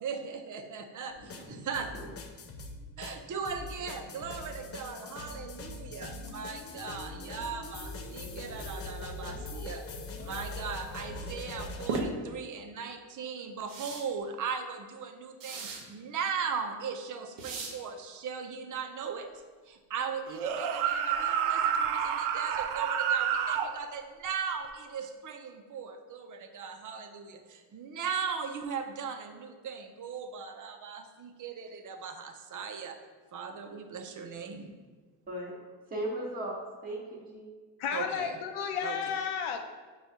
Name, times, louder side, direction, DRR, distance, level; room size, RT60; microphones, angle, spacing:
voice 1, 0.0-2.0 3.0-9.9 10.2-19.3 19.7-33.0 33.3-34.7 37.9-38.4 38.8-39.0, right 6 dB, 40° right, 6 dB, 0.6 m, -38 dB
sound 1, 1.1-12.0, left 2 dB, 30° left, 0.5 m, -42 dB
voice 2, 1.3-1.7 1.9-2.1 35.3-35.5 35.9-37.4, right 1 dB, 20° right, -4 dB, 1.1 m, -37 dB
sound 2, 11.9-12.1 13.7-14.0 15.4-15.8 17.4-17.7, right 4 dB, 65° right, 1.0 m, -35 dB
sound 3, 20.3-23.7, right 8 dB, 85° right, 0.5 m, -29 dB
voice 3, 37.8-39.6, left 7 dB, 80° left, 5 dB, 0.7 m, -32 dB
5.2 x 2.4 x 4.3 m, 1.4 s
cardioid pair, 80°, 49 cm